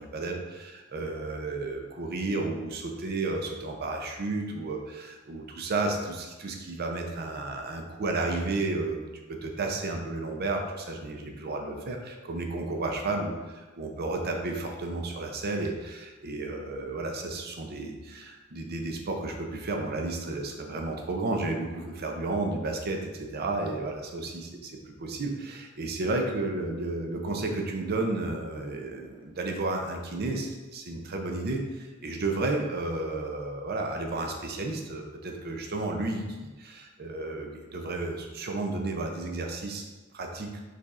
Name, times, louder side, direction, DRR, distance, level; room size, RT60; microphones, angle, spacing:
voice 1, 0.0-9.0 9.3-39.8 40.1-40.5, right 2 dB, 50° right, 3 dB, 0.5 m, -32 dB
4.9 x 4.1 x 2.4 m, 1.2 s
head